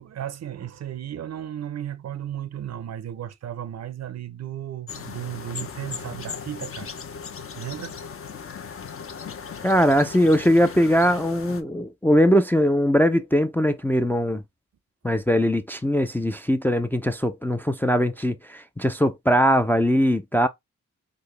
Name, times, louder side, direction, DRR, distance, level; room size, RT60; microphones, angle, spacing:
voice 1, 0.0-6.9 7.5-8.0, right 10 dB, 55° right, 0.5 m, -34 dB
sound 1, 4.9-11.6, left 6 dB, 45° left, 0.6 m, -37 dB
voice 2, 9.6-14.4 15.0-20.5, equal, 5° left, 0.3 m, -21 dB
3.8 x 2.1 x 3.2 m
cardioid pair, 70°, 32 cm